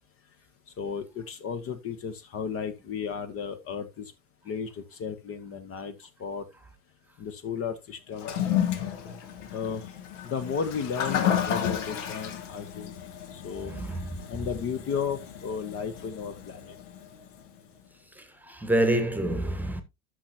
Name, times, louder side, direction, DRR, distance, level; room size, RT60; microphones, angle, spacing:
voice 1, 0.8-4.1 4.5-6.4 7.2-8.3 9.5-9.8 10.2-12.9 13.3-13.7 14.3-16.7, left 6 dB, 35° left, 1.1 m, -34 dB
Toilet flush, 8.1-17.4, left 9 dB, 60° left, 1.5 m, -32 dB
voice 2, 13.6-14.2 18.1-19.8, right 1 dB, 5° right, 1.3 m, -27 dB
11.5 x 6.3 x 2.8 m
figure-of-eight pair, 80°, 41 cm